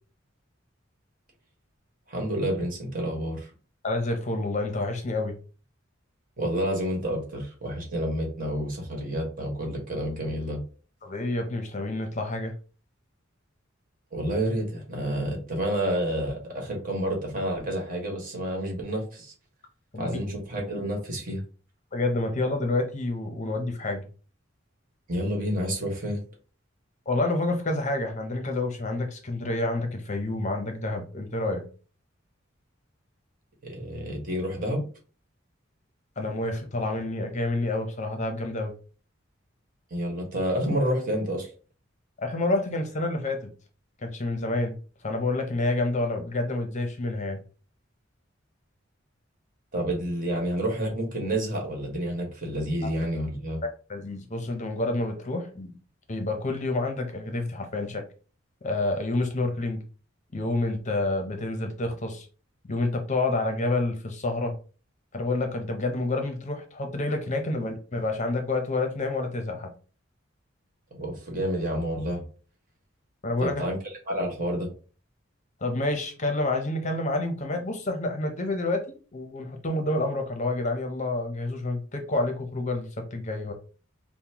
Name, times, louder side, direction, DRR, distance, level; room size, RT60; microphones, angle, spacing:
voice 1, 2.1-3.5 6.4-10.6 14.1-19.3 20.0-21.4 25.1-26.2 33.6-34.8 39.9-41.5 49.7-53.6 70.9-72.2 73.4-73.7 74.1-74.7, right 1 dB, 45° right, 0 dB, 1.5 m, -29 dB
voice 2, 3.8-5.4 11.0-12.5 19.9-20.2 21.9-24.0 27.1-31.6 36.2-38.7 42.2-43.5 44.0-44.8 45.0-47.4 53.9-55.7 56.1-58.0 58.6-59.8 60.3-62.3 62.6-64.5 65.1-69.7 73.2-73.6 75.6-78.8 79.1-83.5, left 2 dB, 35° left, 4 dB, 0.6 m, -28 dB
5.4 x 2.1 x 2.9 m, 0.37 s
head